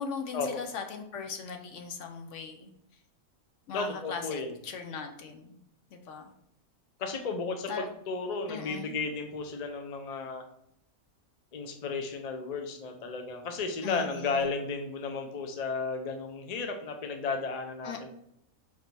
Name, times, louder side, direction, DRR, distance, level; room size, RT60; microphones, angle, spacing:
voice 1, 0.0-2.7 3.7-5.6 5.9-6.3 7.7-7.9 8.5-8.9 13.8-14.4 17.8-18.1, left 5 dB, 65° left, 6 dB, 0.9 m, -39 dB
voice 2, 3.7-4.5 7.0-10.4 11.5-18.1, left 4 dB, 50° left, 5 dB, 0.4 m, -34 dB
4.3 x 2.7 x 4.4 m, 0.75 s
omnidirectional pair, 1.5 m